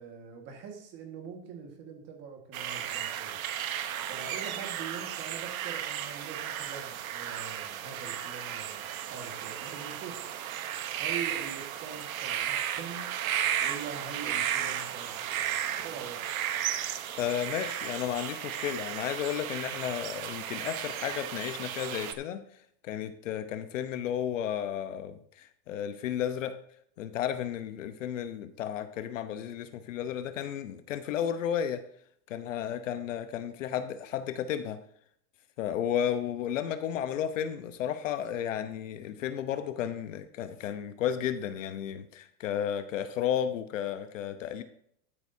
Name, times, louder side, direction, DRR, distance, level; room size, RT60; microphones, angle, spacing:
voice 1, 0.0-3.4 4.1-10.3 11.0-13.1 13.6-16.4, right 6 dB, 20° right, 3 dB, 1.7 m, -44 dB
sound 1, 2.5-22.1, right 10 dB, 60° right, 1.1 m, -34 dB
voice 2, 17.2-22.4 22.8-26.6 27.0-31.8 32.3-34.8 35.6-44.6, left 9 dB, 50° left, 10 dB, 0.9 m, -33 dB
12.0 x 11.0 x 2.7 m, 0.66 s
supercardioid pair, 180°, 48 cm